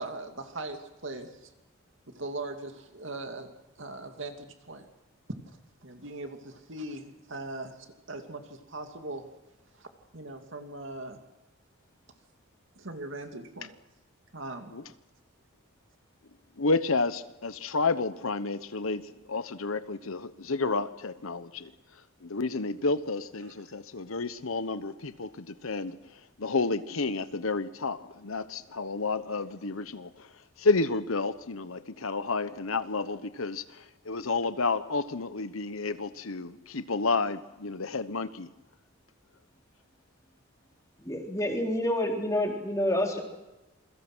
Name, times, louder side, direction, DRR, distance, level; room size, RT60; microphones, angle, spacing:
voice 1, 0.0-1.5 2.1-3.5 3.8-4.8 5.8-9.3 9.7-9.9 10.1-11.2 12.8-13.7 14.3-14.7 23.4-23.5, right 2 dB, 60° right, 2.6 m, -40 dB
voice 2, 16.6-21.7 22.2-30.3 30.6-38.5, left 3 dB, 75° left, 1.1 m, -31 dB
voice 3, 41.0-43.2, left 1 dB, 15° left, 3.6 m, -28 dB
27.5 x 22.5 x 6.3 m
head